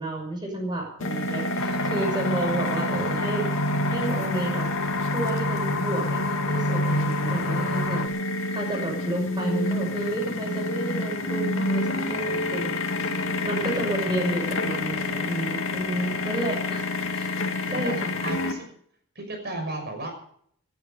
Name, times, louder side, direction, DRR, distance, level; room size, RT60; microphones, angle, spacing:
voice 1, 0.0-3.5 3.9-4.7 5.1-8.0 8.5-12.7 13.4-16.9 17.1-17.3 17.7-18.1, right 2 dB, 20° right, 0 dB, 5.9 m, -31 dB
sound 1, 1.0-18.5, left 2 dB, 60° left, 2.2 m, -29 dB
sound 2, 1.6-8.1, left 2 dB, 90° left, 1.5 m, -28 dB
voice 2, 1.7-2.2 13.7-14.1 17.6-18.7 19.1-20.1, right 2 dB, 45° right, 3 dB, 6.0 m, -36 dB
19.0 x 11.5 x 5.3 m, 0.62 s
head